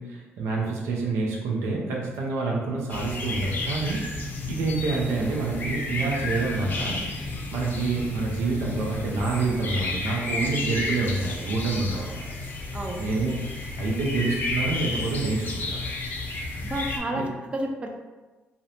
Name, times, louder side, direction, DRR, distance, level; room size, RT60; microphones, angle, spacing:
voice 1, 0.0-4.0 4.5-7.0 7.5-12.2 13.0-15.9 17.1-17.2, right 3 dB, 80° right, -2 dB, 0.5 m, -27 dB
sound 1, 2.9-17.0, left 2 dB, 45° left, 0.5 m, -32 dB
voice 2, 12.7-13.1 16.6-17.9, right 1 dB, 25° right, 2 dB, 0.4 m, -31 dB
2.5 x 2.1 x 2.8 m, 1.2 s
cardioid pair, 100°, 4 cm